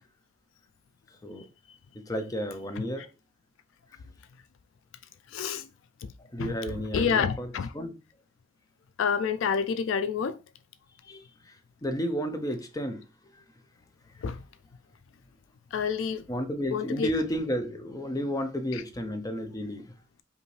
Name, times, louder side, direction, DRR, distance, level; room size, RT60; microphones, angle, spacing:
voice 1, 1.9-3.1 6.2-7.9 11.1-13.0 16.3-19.9, equal, 20° left, 0.6 m, -32 dB
voice 2, 5.3-5.7 6.4-6.5 6.9-7.7 9.0-10.4 14.2-14.4 15.7-16.3 16.7-17.1 18.7-18.8, left 6 dB, 70° left, 0.3 m, -28 dB
5.1 x 2.6 x 3.2 m
head